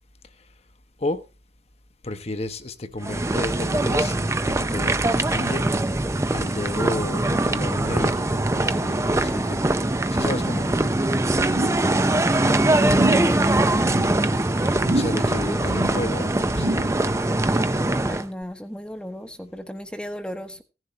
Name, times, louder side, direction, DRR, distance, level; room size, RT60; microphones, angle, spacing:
voice 1, 2.0-4.2 4.5-5.7 6.3-9.6 10.1-10.7 14.9-16.7, left 2 dB, 35° left, 1.1 m, -31 dB
sound 1, 3.0-18.3, right 2 dB, 15° right, 0.6 m, -22 dB
sound 2, 11.4-11.9 12.1-12.5 12.9-13.4 13.7-14.2 14.8-15.3 15.6-16.1 16.5-17.0 17.4-17.5, right 1 dB, 45° right, 1.5 m, -28 dB
voice 2, 12.0-13.6 18.0-20.6, equal, 5° left, 1.1 m, -35 dB
16.5 x 11.0 x 3.2 m
head